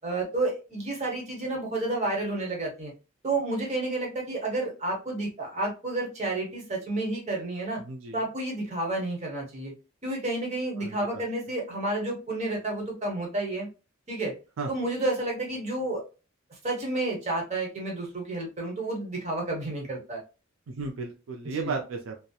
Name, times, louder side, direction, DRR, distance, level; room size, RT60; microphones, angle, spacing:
voice 1, 0.0-2.9 3.2-7.8 8.1-9.7 10.0-13.7 14.1-14.3 14.7-16.0 16.6-20.2 21.6-21.8, right 2 dB, 35° right, -1 dB, 1.0 m, -30 dB
voice 2, 7.7-8.2 10.8-11.2 14.6-14.7 20.7-22.1, right 4 dB, 75° right, 3 dB, 0.4 m, -34 dB
2.8 x 2.0 x 2.2 m, 0.31 s
head